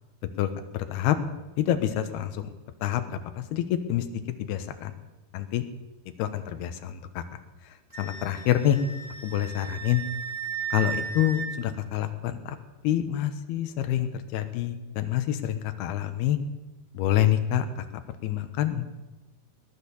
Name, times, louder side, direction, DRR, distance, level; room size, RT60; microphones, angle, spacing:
voice 1, 0.4-1.2 1.6-2.3 2.8-4.0 4.4-4.9 5.3-5.6 6.2-7.2 8.0-8.8 9.2-10.0 10.7-12.6 12.8-16.4 16.9-17.7 18.2-18.8, left 12 dB, 90° left, 9 dB, 3.0 m, -27 dB
Wind instrument woodwind instrument, 7.9-11.5, right 7 dB, 15° right, 0.7 m, -35 dB
19.0 x 11.0 x 7.0 m, 1.1 s
omnidirectional pair, 4.5 m